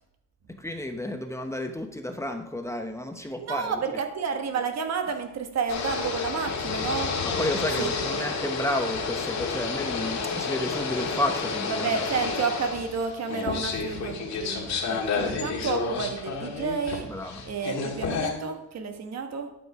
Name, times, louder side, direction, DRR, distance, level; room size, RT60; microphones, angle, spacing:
voice 1, 0.5-3.8 7.4-12.0 14.9-15.0 17.1-17.4, left 1 dB, 10° left, 5 dB, 0.9 m, -31 dB
voice 2, 3.4-7.2 7.8-8.3 11.7-17.1 17.4-19.5, right 5 dB, 60° right, 6 dB, 1.3 m, -31 dB
sound 1, 5.7-18.3, left 4 dB, 65° left, 1.9 m, -30 dB
11.5 x 5.3 x 4.8 m, 0.89 s
cardioid pair, 90°, 30 cm